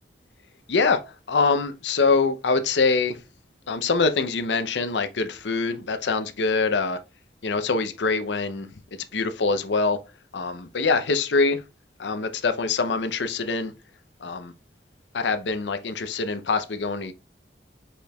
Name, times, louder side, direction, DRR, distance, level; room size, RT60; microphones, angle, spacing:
voice 1, 0.7-1.0 1.3-3.2 3.7-7.0 7.4-8.7 9.1-10.0 10.3-11.6 12.0-13.7 14.2-14.5 15.1-17.1, left 4 dB, 85° left, 0.6 m, -24 dB
5.2 x 4.4 x 2.3 m
head